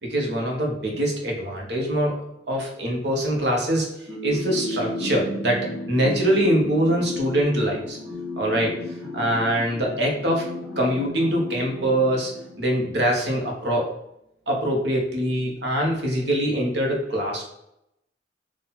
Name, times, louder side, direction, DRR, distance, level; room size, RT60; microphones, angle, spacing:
voice 1, 0.0-2.2 2.5-3.9 4.2-8.0 8.4-8.7 9.1-10.5 10.8-12.3 12.6-13.9 14.5-17.4, right 1 dB, 65° right, 0 dB, 1.3 m, -23 dB
sound 1, 4.1-12.8, left 1 dB, 10° right, 1.2 m, -33 dB
4.3 x 2.8 x 4.0 m, 0.81 s
head